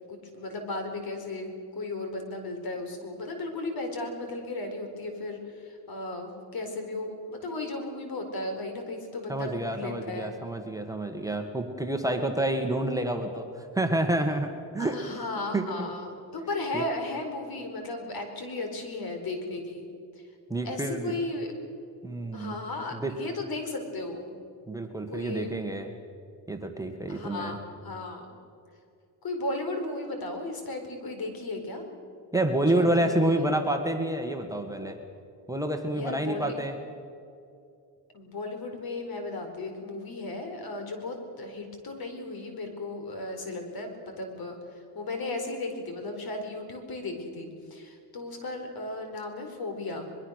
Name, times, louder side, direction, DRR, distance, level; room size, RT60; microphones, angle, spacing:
voice 1, 0.1-10.3 14.8-19.9 20.6-21.5 22.3-24.3 25.1-25.5 27.1-28.2 29.2-31.8 32.7-33.4 35.9-36.5 38.1-50.1, left 2 dB, 55° left, 5 dB, 4.6 m, -35 dB
voice 2, 9.3-15.2 15.5-15.9 16.7-16.8 20.5-21.1 22.0-22.6 22.9-23.2 24.7-25.9 26.5-27.6 32.3-35.0 35.5-36.8, right 1 dB, 10° right, 4 dB, 1.9 m, -28 dB
23.0 x 22.5 x 6.6 m, 2.5 s
cardioid pair, 110°, 43 cm